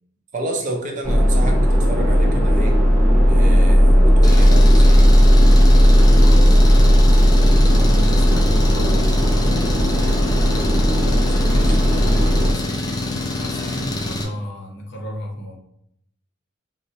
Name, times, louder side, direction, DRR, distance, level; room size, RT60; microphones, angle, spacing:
voice 1, 0.3-2.8 3.3-5.1 10.9-12.7, right 1 dB, 40° right, 2 dB, 0.5 m, -31 dB
sound 1, 1.0-12.5, equal, 5° left, 0.7 m, -14 dB
Engine, 4.2-14.2, left 2 dB, 20° left, 0.3 m, -26 dB
voice 2, 6.2-9.9 11.9-15.6, equal, 60° left, 1 dB, 0.6 m, -34 dB
4.3 x 2.0 x 2.7 m, 0.76 s
head